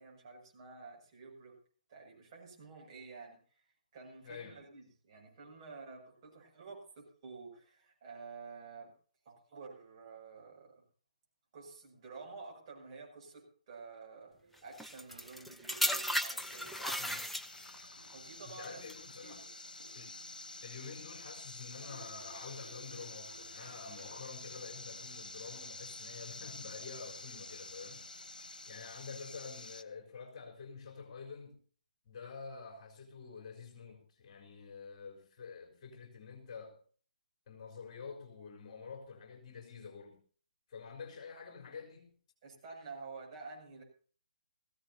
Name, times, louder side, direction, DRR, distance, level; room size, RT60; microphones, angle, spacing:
voice 1, 0.0-1.6 1.9-3.6 3.9-8.9 9.2-10.8 11.5-14.4 14.6-17.1 18.1-18.9 19.2-19.5 42.4-43.8, right 4 dB, 35° right, 0 dB, 6.8 m, -50 dB
voice 2, 4.2-4.6 17.0-17.2 18.5-19.4 19.9-20.2 20.6-28.0 28.7-31.6 32.0-36.8 37.5-40.2 40.7-42.1, left 5 dB, 35° left, 2 dB, 4.3 m, -48 dB
sound 1, 13.9-26.4, right 3 dB, 75° right, 7.4 m, -63 dB
sound 2, 14.8-17.8 18.6-18.9, equal, ahead, 0.8 m, -35 dB
sound 3, 16.4-29.8, left 3 dB, 70° left, 1.5 m, -49 dB
20.5 x 16.0 x 2.8 m, 0.42 s
figure-of-eight pair, 135°, 5 cm